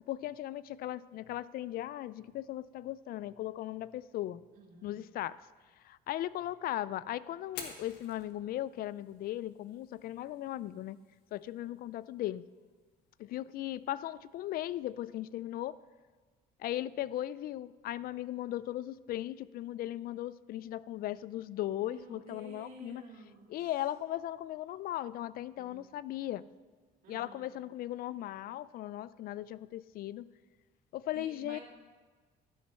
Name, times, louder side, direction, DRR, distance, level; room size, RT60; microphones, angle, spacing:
voice 1, 0.1-4.4 4.8-5.5 5.8-11.0 11.3-12.4 13.2-15.8 16.6-23.0 23.5-26.4 27.1-30.3 30.9-31.6, left 13 dB, 60° left, 19 dB, 0.4 m, -37 dB
voice 2, 4.5-5.0 21.8-23.6 25.6-25.9 27.0-27.5 31.1-31.6, right 4 dB, 55° right, -3 dB, 2.0 m, -52 dB
Fire, 7.4-15.4, left 6 dB, 85° left, 1.4 m, -54 dB
12.5 x 6.9 x 5.6 m, 1.4 s
cardioid pair, 110°, 17 cm